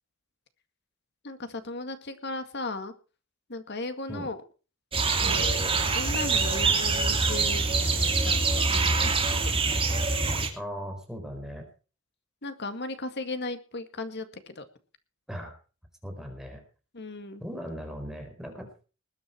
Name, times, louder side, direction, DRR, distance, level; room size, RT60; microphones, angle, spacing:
voice 1, 1.2-2.9 3.5-4.4 5.2-9.5 12.4-14.7 16.9-17.4, left 2 dB, 55° left, 9 dB, 2.0 m, -37 dB
sound 1, 4.9-10.5, right 4 dB, 25° right, 2.6 m, -25 dB
voice 2, 10.5-11.7 15.3-15.5 16.0-16.6 17.4-18.8, equal, ahead, 3 dB, 4.4 m, -38 dB
20.5 x 9.5 x 4.5 m, 0.36 s
head